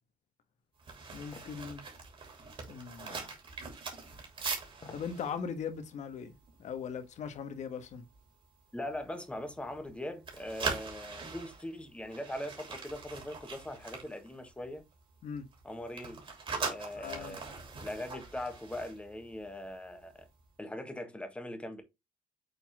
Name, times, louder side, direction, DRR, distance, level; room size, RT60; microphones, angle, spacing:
sound 1, 0.8-6.9 7.2-7.5 7.9-8.2 8.7-9.9 10.2-14.9 15.2-19.7 20.0-20.2, right 4 dB, 40° right, 3.1 m, -42 dB
voice 1, 1.1-1.8 2.7-3.3 4.9-8.1 15.2-15.5 16.9-17.4, left 6 dB, 55° left, 1.4 m, -40 dB
sound 2, 1.3-1.6 3.1-3.3 4.7-5.1 5.5-5.6, left 4 dB, 35° left, 1.9 m, -51 dB
voice 2, 8.7-14.8 15.6-16.2 16.7-20.3 20.6-21.8, left 1 dB, 10° left, 1.6 m, -41 dB
6.8 x 4.2 x 3.6 m
cardioid pair, 130°, 15 cm